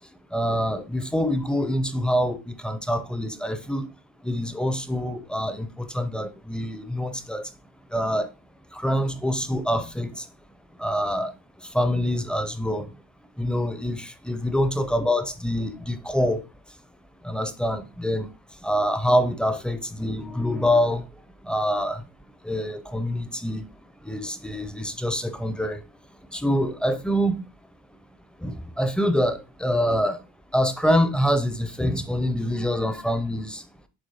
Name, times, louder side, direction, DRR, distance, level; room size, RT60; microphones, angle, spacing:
voice 1, 0.3-3.9 4.2-7.4 7.9-8.3 8.8-10.1 10.8-11.3 11.7-12.9 13.4-16.4 17.2-18.3 18.6-21.0 21.5-22.0 22.5-23.6 24.1-25.8 26.3-27.4 28.4-30.2 30.5-33.6, equal, 5° left, 0.5 m, -25 dB
7.3 x 3.0 x 5.4 m
cardioid pair, 160°, 33 cm